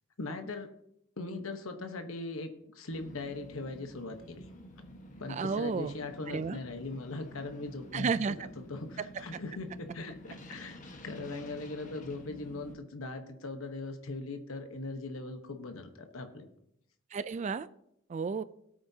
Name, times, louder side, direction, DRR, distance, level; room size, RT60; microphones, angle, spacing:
voice 1, 0.2-0.7 1.2-4.5 5.2-10.8 11.0-16.5, left 3 dB, 80° left, 6 dB, 1.1 m, -40 dB
sound 1, 2.9-12.7, equal, 40° left, 1.3 m, -50 dB
voice 2, 5.3-5.9 6.3-6.6 7.9-8.5 9.0-9.1 17.1-17.7 18.1-18.4, right 5 dB, 35° right, 15 dB, 0.3 m, -32 dB
17.5 x 8.7 x 2.8 m, 0.75 s
head